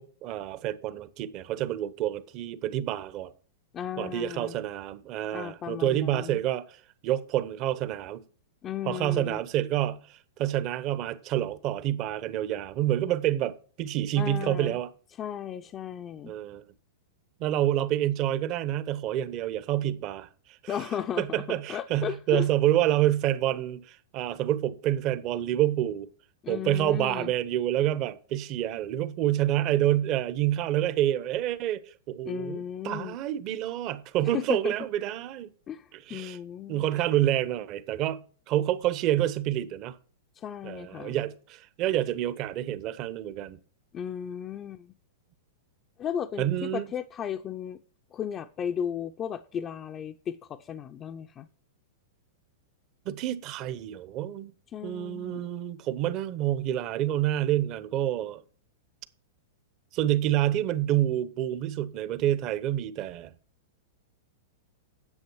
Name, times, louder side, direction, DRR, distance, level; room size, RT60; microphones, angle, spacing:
voice 1, 0.0-3.3 4.0-8.2 8.8-14.9 16.2-16.6 17.4-20.3 20.6-20.8 21.2-26.1 26.5-35.5 36.1-36.4 36.7-39.9 40.6-43.6 46.4-46.9 53.0-54.5 54.8-58.4 59.9-63.3, right 12 dB, 40° right, 1.0 m, -28 dB
voice 2, 3.7-4.6 5.3-6.4 8.6-9.4 14.2-14.8 15.2-16.3 20.7-22.5 26.4-27.3 32.2-33.2 34.2-34.7 35.7-36.9 40.4-41.2 43.9-44.9 46.0-47.8 48.1-51.5 54.7-55.5, left 9 dB, 30° left, 0.6 m, -35 dB
9.9 x 7.7 x 4.6 m
hypercardioid pair, 115°, 0 cm